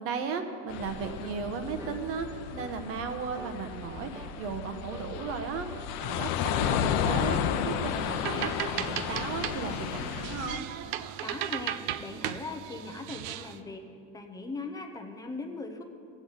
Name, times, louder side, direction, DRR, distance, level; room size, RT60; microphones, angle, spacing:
voice 1, 0.0-5.7 5.9-6.3 6.6-10.7, right 5 dB, 45° right, 7 dB, 1.0 m, -35 dB
sound 1, 0.7-10.6, left 8 dB, 90° left, 0.7 m, -32 dB
sound 2, 1.0-1.3 1.8-2.0 2.6-2.8 3.4-3.6 4.1-4.4 4.9-5.1 5.7-5.9 6.5-6.7 7.3-7.5 8.0-8.3 8.8-8.9, right 3 dB, 10° right, 0.3 m, -47 dB
sound 3, 7.9-13.6, right 12 dB, 75° right, 0.5 m, -36 dB
voice 2, 11.2-13.9 14.1-15.8, left 3 dB, 10° left, 5 dB, 0.7 m, -39 dB
16.5 x 8.3 x 4.0 m, 2.6 s
cardioid pair, 170°, 31 cm